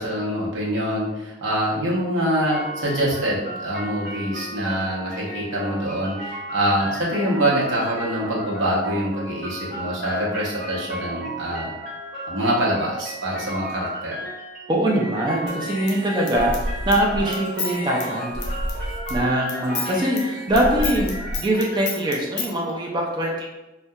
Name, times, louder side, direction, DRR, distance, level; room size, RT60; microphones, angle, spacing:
voice 1, 0.0-11.7 12.3-14.2, equal, 70° right, -5 dB, 0.8 m, -25 dB
sound 1, 2.5-21.8, right 1 dB, 45° right, 1.0 m, -34 dB
voice 2, 14.7-18.5 18.8-23.5, right 1 dB, 20° right, -1 dB, 0.3 m, -23 dB
Human voice / Scissors, 15.5-19.2 19.5-22.5, left 2 dB, 55° left, 0.4 m, -30 dB
2.7 x 2.1 x 2.2 m, 1.0 s
head